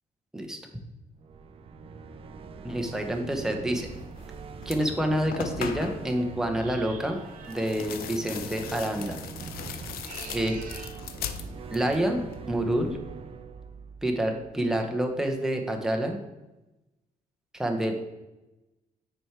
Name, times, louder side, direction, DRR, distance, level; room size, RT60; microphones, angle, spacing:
sound 1, 1.1-15.1, right 5 dB, 40° right, 0.4 m, -42 dB
voice 1, 2.6-3.9 4.7-7.2 7.5-9.2 10.3-10.6 11.7-13.0 14.0-16.2 17.6-18.0, right 1 dB, 5° right, 2 dB, 0.7 m, -28 dB
sound 2, 4.2-4.3 4.6-6.1 7.4-12.0 12.3-12.9, left 8 dB, 90° left, 0.5 m, -39 dB
sound 3, 6.5-7.8 9.8-11.0, right 4 dB, 60° right, 1.0 m, -46 dB
6.1 x 4.4 x 4.7 m, 1.0 s
cardioid pair, 160°, 15 cm